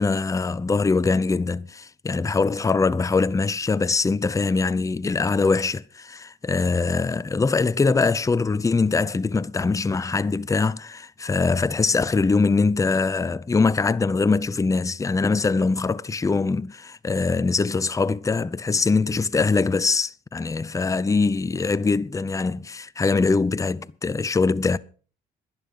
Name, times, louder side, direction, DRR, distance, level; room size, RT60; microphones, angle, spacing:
voice 1, 0.0-24.8, left 4 dB, 15° left, 0.5 m, -22 dB
11.5 x 11.0 x 5.4 m
cardioid pair, 90°, 20 cm